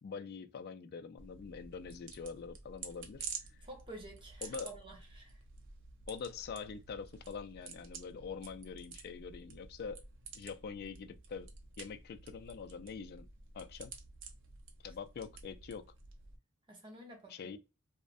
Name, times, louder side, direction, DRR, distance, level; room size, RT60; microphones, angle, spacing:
voice 1, 0.0-3.3 4.4-4.7 6.1-10.0 10.3-11.5 11.8-13.3 13.5-13.9 14.8-15.8 17.3-17.6, left 5 dB, 50° left, 0.3 m, -44 dB
sound 1, 1.2-16.4, right 5 dB, 60° right, 0.5 m, -50 dB
voice 2, 3.6-5.4 16.7-17.6, right 1 dB, 25° right, 0.7 m, -51 dB
2.4 x 2.1 x 2.5 m
head